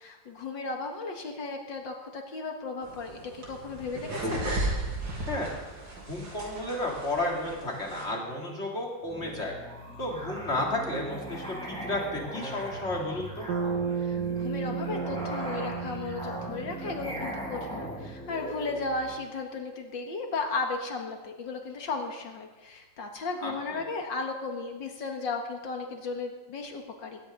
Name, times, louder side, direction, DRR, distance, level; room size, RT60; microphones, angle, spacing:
voice 1, 0.0-4.4 14.0-27.2, left 3 dB, 85° left, 3 dB, 2.4 m, -35 dB
sound 1, 2.8-8.1, right 1 dB, 80° right, 3.9 m, -35 dB
voice 2, 6.1-9.6 10.0-13.5 23.4-23.8, left 1 dB, 35° left, -1 dB, 3.6 m, -32 dB
Musical instrument, 9.0-19.2, equal, 5° left, 6.9 m, -39 dB
Bass guitar, 13.5-17.9, right 7 dB, 65° right, 1.6 m, -34 dB
20.5 x 17.5 x 4.0 m, 1.2 s
omnidirectional pair, 2.0 m